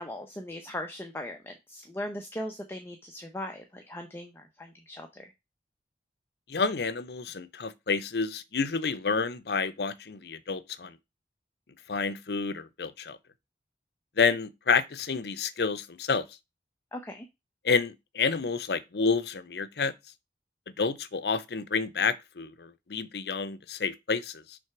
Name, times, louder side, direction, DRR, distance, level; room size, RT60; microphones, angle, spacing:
voice 1, 0.0-5.3 16.9-17.3, left 1 dB, 15° left, 0.7 m, -39 dB
voice 2, 6.5-11.0 11.9-13.2 14.2-16.2 17.6-19.9 20.8-24.6, left 5 dB, 65° left, 0.6 m, -29 dB
6.2 x 3.3 x 5.8 m
head